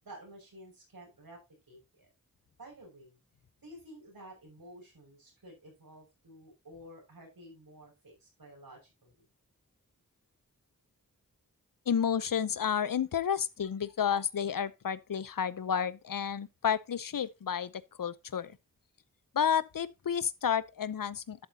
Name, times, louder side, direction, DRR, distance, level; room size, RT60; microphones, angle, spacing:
voice 1, 0.0-1.4 1.7-2.1 2.6-3.2 3.6-9.3, right 1 dB, 85° right, 5.9 m, -52 dB
voice 2, 11.9-18.5 19.3-21.5, left 8 dB, 70° left, 0.7 m, -31 dB
11.5 x 8.2 x 2.8 m
wide cardioid pair, 55°, 34 cm